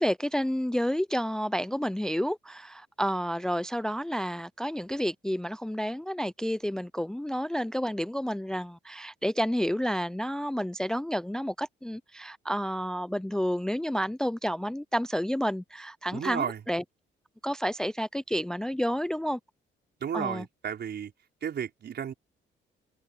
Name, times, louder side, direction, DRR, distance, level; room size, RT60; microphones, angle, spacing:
voice 1, 0.0-16.8 17.4-19.4 20.1-20.5, equal, 5° left, 0.4 m, -30 dB
voice 2, 16.1-16.6 20.0-21.1 21.4-22.1, right 8 dB, 60° right, 5.3 m, -33 dB
cardioid pair, 90°, 20 cm